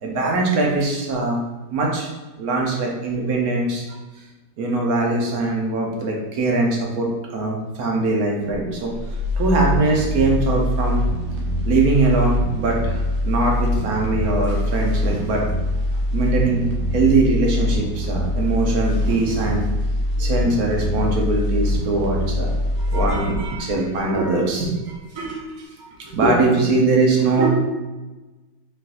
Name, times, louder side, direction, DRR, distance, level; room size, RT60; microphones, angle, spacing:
voice 1, 0.0-1.4 1.7-2.1 2.4-3.8 4.6-8.9 9.4-11.0 11.6-15.4 16.1-16.6 16.9-19.6 20.2-27.5, right 3 dB, 60° right, -1 dB, 1.2 m, -21 dB
sound 1, 8.5-24.6 24.9-25.0, left 1 dB, 75° right, 1.4 m, -23 dB
4.4 x 3.9 x 2.5 m, 1.2 s
omnidirectional pair, 2.0 m